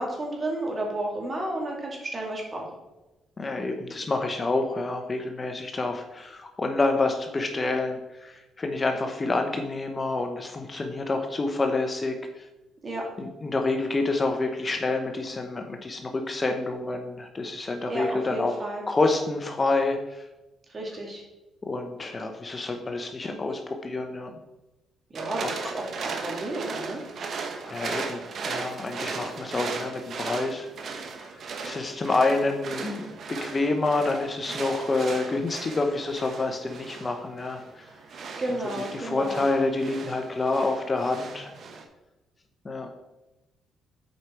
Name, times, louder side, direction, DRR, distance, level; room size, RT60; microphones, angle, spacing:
voice 1, 0.0-2.6 12.8-13.0 17.9-18.8 20.7-21.2 25.1-27.0 38.4-39.4, right 1 dB, 35° right, -1 dB, 2.6 m, -32 dB
voice 2, 3.4-12.5 13.2-18.5 18.9-20.2 21.6-24.3 25.4-25.5 27.6-28.2 28.5-30.7 31.3-37.9 38.9-41.5 42.6-42.9, left 3 dB, 30° left, 4 dB, 0.9 m, -28 dB
sound 1, 25.1-41.8, right 4 dB, 60° right, 1.1 m, -37 dB
8.0 x 5.0 x 4.6 m, 1.0 s
cardioid pair, 90°, 0 cm